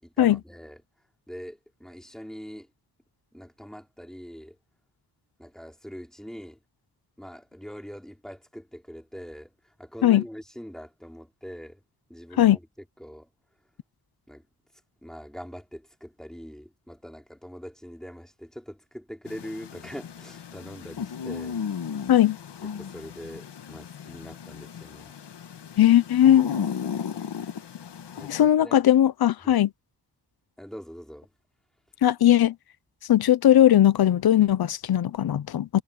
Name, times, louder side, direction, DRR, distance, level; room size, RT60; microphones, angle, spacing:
voice 1, 0.0-0.8 1.3-2.7 3.3-4.6 5.4-6.6 7.2-11.8 12.1-12.7 13.0-13.3 14.3-14.5 15.0-21.6 22.8-25.1 28.2-28.8 29.4-29.6 30.6-31.3, equal, ahead, 5.2 m, -43 dB
sound 1, 19.3-28.4, left 7 dB, 85° left, 1.8 m, -35 dB
voice 2, 25.8-26.5 28.3-29.7 32.0-32.5 33.1-35.8, left 11 dB, 65° left, 0.7 m, -19 dB
wide cardioid pair, 145°, 40 cm